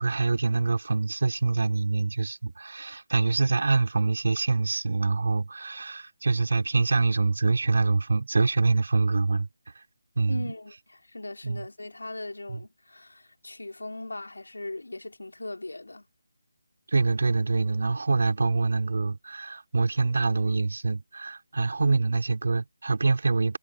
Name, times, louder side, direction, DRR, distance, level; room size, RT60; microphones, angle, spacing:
voice 1, 0.0-9.5 9.8-9.9 10.2-10.5 11.4-11.6 12.5-12.6 16.9-23.6, right 3 dB, 60° right, 4.8 m, -25 dB
voice 2, 10.3-16.1, left 2 dB, 80° left, 3.5 m, -39 dB
figure-of-eight pair, 160°, 0 cm